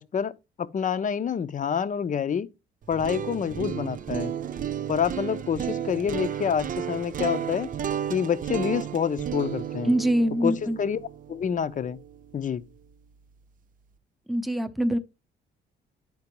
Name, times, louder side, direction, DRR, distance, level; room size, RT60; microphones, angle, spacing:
voice 1, 0.0-2.5 2.9-4.3 4.9-7.7 8.1-9.9 10.4-11.0 11.3-12.0 12.3-12.6, left 7 dB, 40° left, 0.6 m, -27 dB
sound 1, 2.8-12.9, right 9 dB, 45° right, 0.4 m, -33 dB
voice 2, 9.8-10.8 14.3-15.0, right 1 dB, ahead, 0.7 m, -24 dB
11.0 x 4.4 x 3.0 m
cardioid pair, 90°, 20 cm